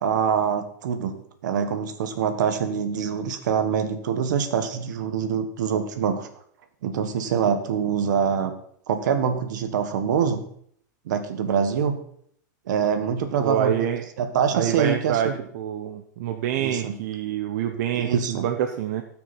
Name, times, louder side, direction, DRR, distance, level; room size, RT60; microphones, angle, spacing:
voice 1, 0.0-6.3 6.8-8.5 8.9-10.4 11.1-12.0 12.7-13.9 14.2-15.4 16.6-17.0 17.9-18.5, right 7 dB, 75° right, 8 dB, 1.6 m, -25 dB
voice 2, 13.4-14.0 14.5-19.0, right 9 dB, 55° right, 5 dB, 0.9 m, -26 dB
17.0 x 6.2 x 4.6 m, 0.64 s
supercardioid pair, 155°, 10 cm